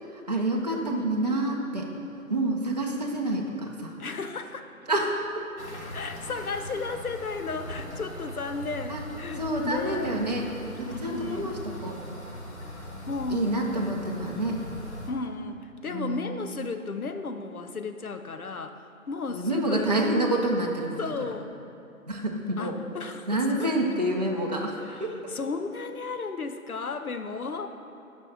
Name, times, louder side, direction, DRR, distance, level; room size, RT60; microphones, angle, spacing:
voice 1, 0.1-1.9 2.3-4.0 4.9-5.5 8.9-9.0 9.4-12.0 13.3-14.6 15.9-16.5 19.3-21.0 22.1-22.8 23.3-25.2, right 1 dB, 30° right, -1 dB, 0.6 m, -28 dB
voice 2, 4.0-4.7 5.9-10.2 10.9-11.6 13.1-13.8 15.1-18.8 19.1-19.9 21.0-21.5 22.6-23.7 24.8-27.7, left 4 dB, 80° left, 7 dB, 0.8 m, -34 dB
sound 1, 5.6-15.1, equal, 50° left, 1.5 m, -40 dB
6.2 x 5.4 x 6.6 m, 2.9 s
figure-of-eight pair, 150°, 43 cm